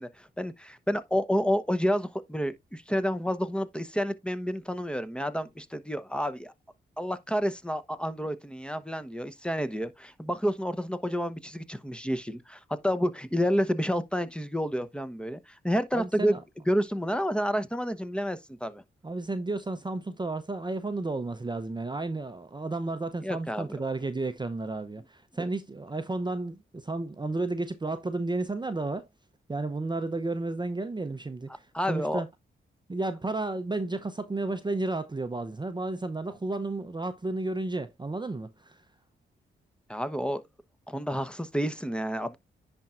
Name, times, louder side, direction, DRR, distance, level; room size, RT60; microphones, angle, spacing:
voice 1, 0.0-6.5 7.0-16.4 16.7-18.8 23.2-23.8 31.7-32.2 39.9-40.4 40.9-42.4, equal, 5° left, 1.0 m, -29 dB
voice 2, 15.9-16.4 19.0-29.1 29.5-32.3 32.9-38.8, right 2 dB, 20° right, 0.7 m, -32 dB
10.0 x 4.4 x 2.5 m
cardioid pair, 55°, 21 cm